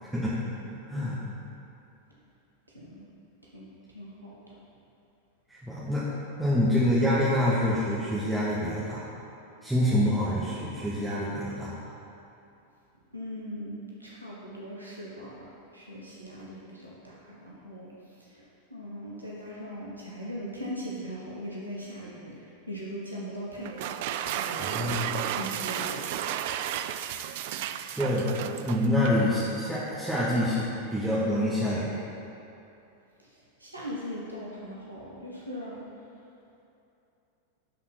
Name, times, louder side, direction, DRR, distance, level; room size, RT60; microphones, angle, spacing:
voice 1, 0.0-0.3 0.9-1.2 5.5-6.1 6.4-9.1 9.6-11.7 24.6-25.2 27.9-32.0, left 1 dB, 5° right, -10 dB, 1.4 m, -26 dB
voice 2, 3.9-4.6 13.1-17.9 18.2-18.4 18.7-23.9 24.3-26.4 29.4-29.6 33.2-33.3 33.6-35.8, equal, 85° right, -5 dB, 1.2 m, -40 dB
sound 1, 23.6-29.2, right 10 dB, 50° right, 0.3 m, -33 dB
11.0 x 4.1 x 5.8 m, 2.8 s
figure-of-eight pair, 90°, 0 cm